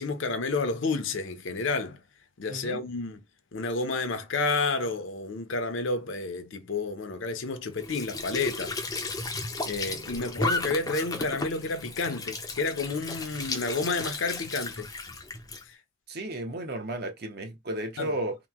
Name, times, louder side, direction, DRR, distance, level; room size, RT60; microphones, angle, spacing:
voice 1, 0.0-2.0 2.4-3.2 3.5-8.8 9.7-14.9 18.0-18.1, left 3 dB, 65° left, 0.6 m, -30 dB
voice 2, 2.5-2.8 16.1-18.4, right 1 dB, 50° right, 0.7 m, -33 dB
Squeak / Sink (filling or washing) / Trickle dribble, 7.7-15.6, left 3 dB, 20° left, 0.4 m, -34 dB
2.9 x 2.1 x 3.4 m
head